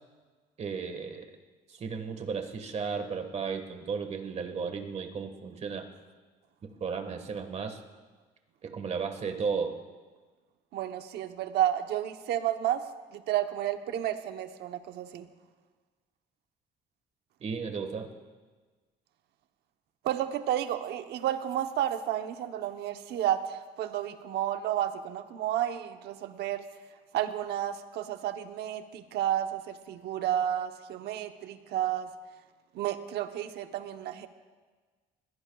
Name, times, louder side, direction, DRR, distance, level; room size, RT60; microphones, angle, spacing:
voice 1, 0.6-1.3 1.7-5.9 6.6-7.8 8.6-9.8 17.4-18.1, right 5 dB, 40° right, 6 dB, 1.6 m, -34 dB
voice 2, 10.7-12.8 13.1-15.3 20.0-26.6 27.1-32.1 32.7-34.3, right 11 dB, 75° right, 8 dB, 1.0 m, -31 dB
21.0 x 16.0 x 2.4 m, 1.4 s
cardioid pair, 110°, 17 cm